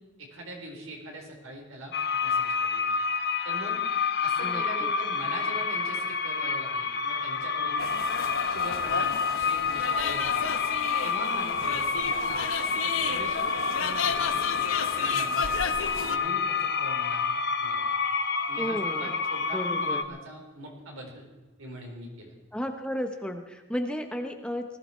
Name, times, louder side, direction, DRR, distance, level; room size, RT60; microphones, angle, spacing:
voice 1, 0.2-1.9 2.2-2.8 3.4-3.8 4.2-7.9 8.2-10.5 11.0-12.4 12.8-14.4 14.8-17.8 18.5-21.2 21.6-22.3, right 1 dB, 85° right, 0 dB, 4.3 m, -42 dB
sound 1, 1.9-20.0, left 5 dB, 50° left, 0.9 m, -28 dB
voice 2, 4.4-4.9 18.6-19.1 19.5-20.0 22.5-24.6, equal, 5° left, 5 dB, 0.9 m, -33 dB
sound 2, 7.8-16.2, left 6 dB, 85° left, 1.1 m, -33 dB
19.5 x 14.5 x 4.5 m, 1.2 s
head